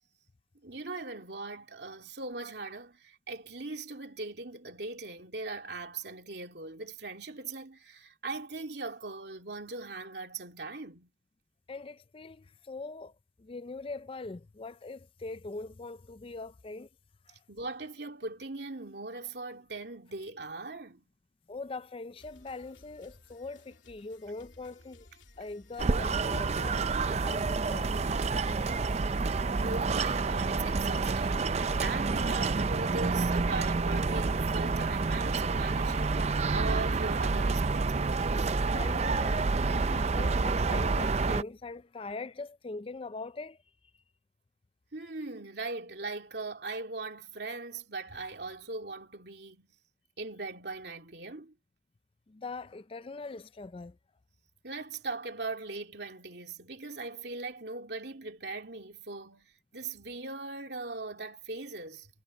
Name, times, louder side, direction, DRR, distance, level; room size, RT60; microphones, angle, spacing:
voice 1, 0.6-11.1 17.5-21.1 29.2-38.5 44.9-49.8 50.2-51.5 54.6-62.1, right 3 dB, 60° right, 3.0 m, -40 dB
voice 2, 11.7-13.1 13.4-16.9 17.3-17.4 21.5-25.1 25.4-28.3 38.7-43.6 52.3-54.0, left 3 dB, 30° left, 0.4 m, -42 dB
sound 1, 22.2-30.8, left 2 dB, 85° left, 2.9 m, -58 dB
sound 2, 25.8-41.4, right 4 dB, 35° right, 0.5 m, -28 dB
head